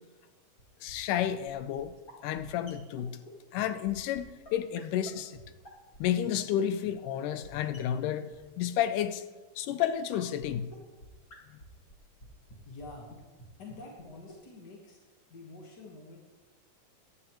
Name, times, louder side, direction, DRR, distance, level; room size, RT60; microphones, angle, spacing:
sound 1, 0.6-0.7 0.9-1.0 1.2-1.3 1.5-1.6 1.8-1.9 2.1-2.2 2.4-2.5 2.7-2.8 3.0-3.1 3.3-3.4 3.6-3.7 3.9-4.0 4.1-4.2 4.4-4.5 4.8-4.9 5.1-5.2 5.3-5.4 5.6-6.0 6.2-6.3 6.5-6.6 6.8-6.9 7.1-7.2 7.4-7.5 7.7-8.1 8.3-8.4 9.8-9.9 10.1-10.2 10.4-10.5 10.7-10.8 11.0-11.1 11.3-11.4 11.6-11.7 11.9-12.2 12.5-12.6 12.8-12.9 13.1-13.2 13.4-13.5 13.7-13.8 14.0-14.1 14.3-14.4, equal, 35° left, 1.8 m, -49 dB
voice 1, 0.8-1.9 2.2-3.2 3.5-5.4 6.0-8.3 8.6-9.2 9.6-10.7, left 10 dB, 80° left, 11 dB, 2.1 m, -31 dB
voice 2, 12.6-13.1 13.6-15.0 15.3-16.2, left 3 dB, 55° left, -1 dB, 1.2 m, -47 dB
18.0 x 11.0 x 3.0 m, 1.3 s
omnidirectional pair, 3.8 m